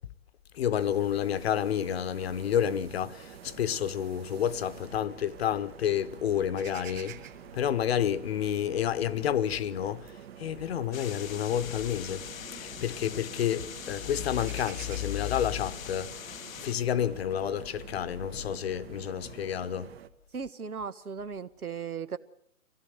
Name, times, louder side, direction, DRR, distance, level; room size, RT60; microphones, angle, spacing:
voice 1, 0.5-7.2 7.5-12.2 12.5-16.1 16.6-19.9, left 9 dB, 45° left, 1.0 m, -30 dB
sound 1, 0.7-20.1, right 9 dB, 45° right, 1.5 m, -49 dB
sound 2, 6.6-12.8 13.1-13.7 13.9-17.9, right 10 dB, 20° right, 2.2 m, -51 dB
sound 3, 10.9-16.7, left 9 dB, 65° left, 0.8 m, -43 dB
voice 2, 20.3-22.2, right 6 dB, 85° right, 1.6 m, -37 dB
24.5 x 17.5 x 8.0 m
hypercardioid pair, 140°, 43 cm